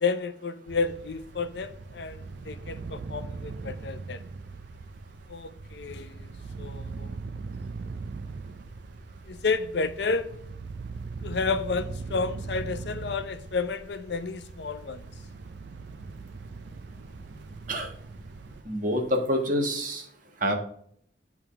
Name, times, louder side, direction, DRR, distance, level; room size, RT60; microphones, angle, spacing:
voice 1, 0.0-4.2 5.3-6.3 6.6-7.1 9.3-10.3 11.2-15.1, left 4 dB, 60° left, 11 dB, 0.6 m, -31 dB
sound 1, 0.7-18.6, right 4 dB, 65° right, 0.4 m, -40 dB
voice 2, 18.6-20.0 20.4-20.5, equal, 45° right, 3 dB, 1.4 m, -26 dB
9.0 x 3.6 x 5.7 m, 0.65 s
head